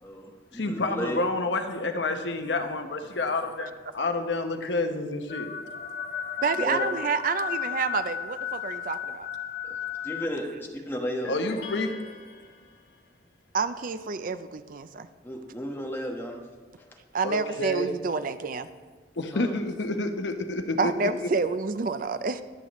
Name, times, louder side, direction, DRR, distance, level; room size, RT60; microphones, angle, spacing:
voice 1, 0.0-1.2 6.5-6.9 9.6-9.8 10.0-11.3 15.2-16.4 16.8-16.9 19.3-19.5, equal, 15° left, 0 dB, 1.3 m, -34 dB
voice 2, 0.5-5.5 11.3-11.9 17.2-17.9 19.2-21.3, left 2 dB, 80° left, 6 dB, 0.9 m, -29 dB
sound 1, 5.3-10.3, left 9 dB, 40° left, 0.6 m, -34 dB
voice 3, 6.4-9.3 13.5-15.1 17.1-18.7 20.8-22.4, right 4 dB, 50° right, 12 dB, 0.4 m, -28 dB
sound 2, 11.2-13.0, left 4 dB, 60° left, 1.5 m, -43 dB
21.5 x 7.4 x 3.1 m, 1.4 s
head